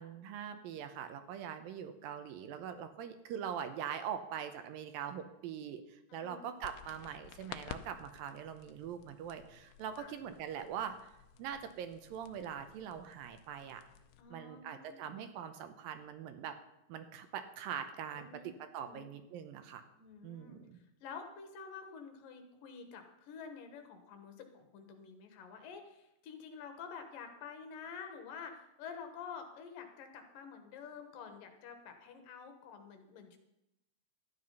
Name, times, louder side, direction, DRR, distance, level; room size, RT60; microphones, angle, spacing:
voice 1, 0.0-11.1 11.4-13.8 14.3-16.6 16.9-19.8 20.2-20.8, right 8 dB, 80° right, 9 dB, 2.5 m, -43 dB
voice 2, 6.1-6.5 9.9-10.1 14.2-15.1 18.1-19.1 19.9-33.4, left 6 dB, 70° left, 6 dB, 2.8 m, -49 dB
sound 1, 6.6-14.2, left 10 dB, 85° left, 1.8 m, -53 dB
12.5 x 9.9 x 5.5 m, 0.89 s
omnidirectional pair, 4.3 m